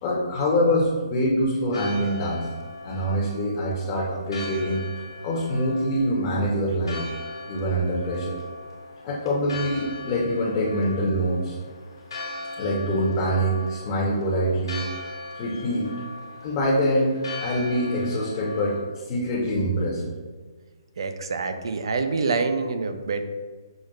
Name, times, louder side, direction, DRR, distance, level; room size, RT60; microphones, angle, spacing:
voice 1, 0.0-2.4 2.8-4.8 5.2-7.0 7.5-8.4 9.0-11.6 12.6-14.8 15.4-15.9 16.4-17.1 17.4-18.8 19.1-20.0, equal, 25° left, -5 dB, 0.7 m, -24 dB
Church bell, 1.7-18.8, left 2 dB, 70° left, 1.0 m, -39 dB
voice 2, 21.0-23.3, right 4 dB, 70° right, 8 dB, 0.4 m, -26 dB
6.1 x 2.1 x 2.4 m, 1.4 s
hypercardioid pair, 160°, 3 cm